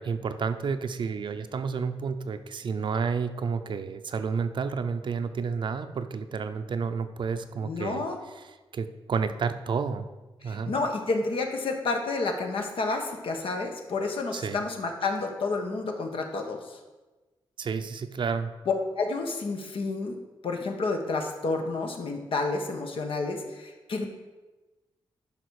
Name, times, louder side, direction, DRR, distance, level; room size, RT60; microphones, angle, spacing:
voice 1, 0.0-10.1 10.4-10.8 14.3-14.6 17.6-18.5, right 5 dB, 60° right, 10 dB, 0.6 m, -31 dB
voice 2, 7.6-8.2 10.4-16.8 19.0-20.2 20.4-24.0, left 3 dB, 75° left, 4 dB, 1.3 m, -30 dB
10.5 x 5.8 x 4.8 m, 1.2 s
wide cardioid pair, 125°, 9 cm